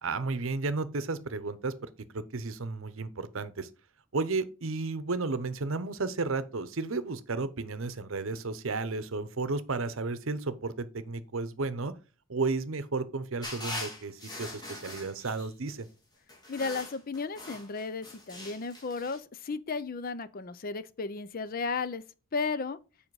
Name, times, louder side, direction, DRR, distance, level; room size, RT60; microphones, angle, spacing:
voice 1, 0.0-3.7 4.1-11.9 12.3-15.9, right 3 dB, 70° right, 0.8 m, -33 dB
sound 1, 13.4-15.7 16.3-19.2, left 1 dB, 20° left, 2.8 m, -42 dB
voice 2, 16.5-22.0 22.3-22.8, left 4 dB, 40° left, 0.5 m, -34 dB
7.5 x 5.0 x 4.7 m
head